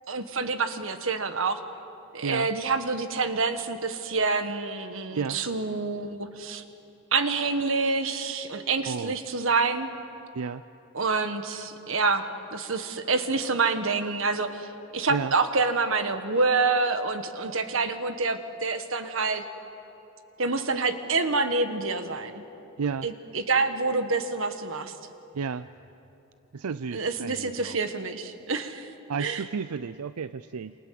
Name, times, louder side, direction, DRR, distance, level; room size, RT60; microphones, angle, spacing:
voice 1, 0.1-1.6 2.1-6.6 7.1-9.9 10.9-12.2 12.5-19.4 20.4-22.4 23.0-24.9 26.9-28.9 29.2-29.4, right 4 dB, 65° right, 8 dB, 1.6 m, -27 dB
voice 2, 5.1-5.4 8.9-9.2 10.3-10.6 15.1-15.3 22.8-23.1 25.3-25.7 26.5-27.8 29.1-30.7, right 5 dB, 90° right, 13 dB, 0.5 m, -32 dB
28.0 x 27.5 x 7.7 m, 3.0 s
head